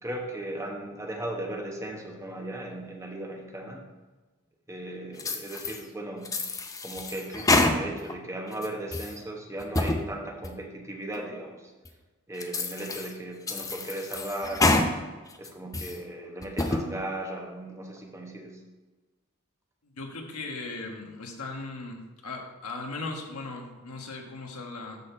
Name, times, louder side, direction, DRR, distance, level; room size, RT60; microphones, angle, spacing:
voice 1, 0.0-3.8 4.7-6.3 6.8-11.7 12.3-15.0 15.4-18.6, right 1 dB, 15° right, 0 dB, 1.0 m, -37 dB
sound 1, 5.2-5.8 6.2-8.1 8.5-9.1 9.6-10.0 10.4-10.5 11.1-11.2 11.9-12.0 12.4-13.1 13.5-14.9 15.3-16.0 16.4-16.8, left 2 dB, 15° left, 0.5 m, -27 dB
voice 2, 19.8-25.0, left 3 dB, 85° left, 2 dB, 1.4 m, -38 dB
12.5 x 4.3 x 4.4 m, 1.2 s
head